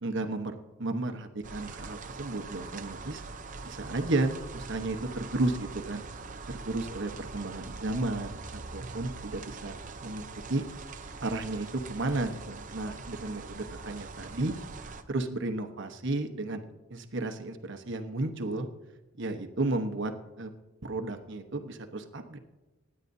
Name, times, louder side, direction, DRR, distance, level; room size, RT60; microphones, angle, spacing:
voice 1, 0.0-3.2 3.6-6.1 6.5-9.7 10.0-10.2 10.5-10.6 11.2-14.5 15.1-16.6 16.9-18.7 19.2-20.5 20.8-22.4, right 2 dB, 55° right, 5 dB, 1.0 m, -33 dB
sound 1, 1.4-15.0, right 4 dB, 35° right, 0.6 m, -43 dB
26.5 x 9.8 x 2.7 m, 1.1 s
head